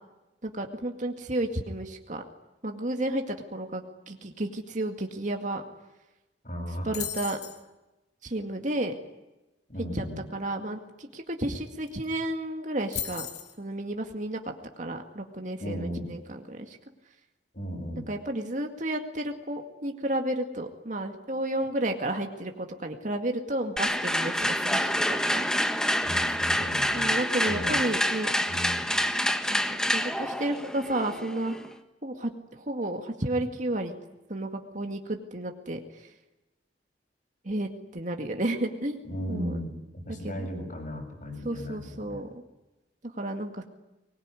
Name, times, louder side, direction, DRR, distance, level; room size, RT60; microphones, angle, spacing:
voice 1, 0.4-2.2 2.6-5.6 6.8-7.4 8.2-8.9 9.8-10.1 10.3-13.3 13.6-14.4 14.8-16.8 18.1-25.5 26.9-28.3 29.5-31.6 32.0-34.0 34.3-36.1 37.4-39.0 39.3-39.6 40.2-40.5 41.4-42.3 43.1-43.6, right 1 dB, 45° right, 4 dB, 2.1 m, -32 dB
voice 2, 6.4-7.0 9.7-10.2 15.6-16.1 17.5-18.0 26.0-27.2 27.5-27.8 28.5-28.8 39.0-42.2, equal, 45° left, 3 dB, 7.3 m, -36 dB
sound 1, 6.9-7.6 11.6-11.7 11.9-12.2 12.9-13.6, left 10 dB, 75° left, 3.3 m, -35 dB
sound 2, 23.8-31.7, equal, 5° left, 1.4 m, -27 dB
23.5 x 21.0 x 9.9 m, 1.0 s
head